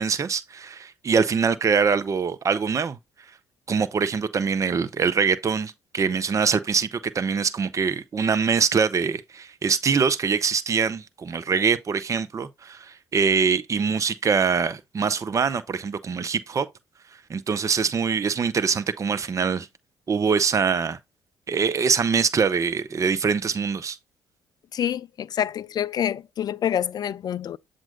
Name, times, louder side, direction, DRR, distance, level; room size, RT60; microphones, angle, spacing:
voice 1, 0.0-3.0 3.7-16.7 17.3-19.7 20.1-21.0 21.5-24.0, right 5 dB, 35° right, 0.6 m, -23 dB
voice 2, 24.7-27.6, left 9 dB, 50° left, 0.4 m, -27 dB
7.4 x 2.6 x 5.0 m
hypercardioid pair, 55°, 9 cm